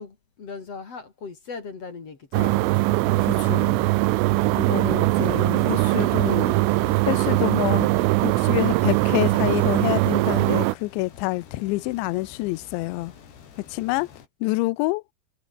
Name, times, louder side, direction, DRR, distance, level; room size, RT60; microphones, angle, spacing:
voice 1, 0.0-2.8 3.9-5.0, left 4 dB, 35° left, 3.1 m, -40 dB
sound 1, 2.3-10.8, right 21 dB, 90° right, 3.3 m, -21 dB
sound 2, 2.4-10.6, left 1 dB, 5° left, 3.7 m, -40 dB
voice 2, 3.2-3.8 4.6-6.5 7.1-7.9 8.2-13.1 13.7-14.1 14.4-15.0, left 21 dB, 80° left, 2.9 m, -27 dB
sound 3, 6.2-14.3, left 7 dB, 55° left, 5.5 m, -48 dB
omnidirectional pair, 5.7 m